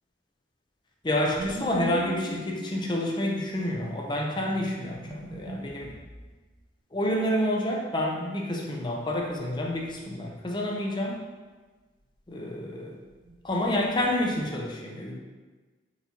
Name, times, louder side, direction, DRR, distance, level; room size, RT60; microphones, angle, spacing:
voice 1, 1.0-5.9 6.9-11.2 12.3-13.0 13.4-15.2, left 1 dB, 25° left, -1 dB, 0.6 m, -28 dB
sound 1, 1.3-6.5 9.2-9.9 10.1-10.6 13.1-14.5, right 1 dB, 65° right, 0.9 m, -41 dB
4.3 x 4.2 x 2.8 m, 1.3 s
head